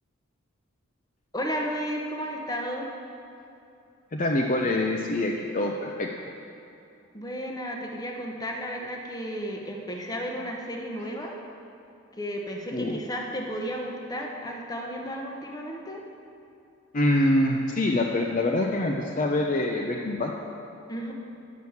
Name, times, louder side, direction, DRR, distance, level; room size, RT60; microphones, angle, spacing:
voice 1, 1.3-2.9 7.1-11.4 12.1-16.0 20.9-21.1, equal, 20° left, 1 dB, 0.9 m, -33 dB
voice 2, 4.1-6.1 12.7-13.0 16.9-20.3, left 1 dB, 35° left, 0 dB, 0.5 m, -25 dB
9.4 x 6.1 x 7.0 m, 2.7 s
head